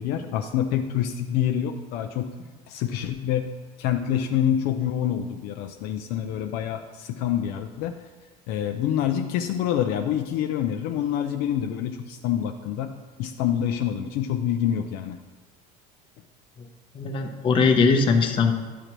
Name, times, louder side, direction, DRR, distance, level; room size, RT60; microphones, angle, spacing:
voice 1, 0.0-2.3 2.7-3.5 3.8-8.0 8.5-15.2, left 10 dB, 60° left, 5 dB, 0.5 m, -26 dB
voice 2, 16.9-18.5, left 4 dB, 30° left, 4 dB, 0.8 m, -20 dB
11.0 x 6.6 x 3.0 m, 1.4 s
cardioid pair, 155°, 18 cm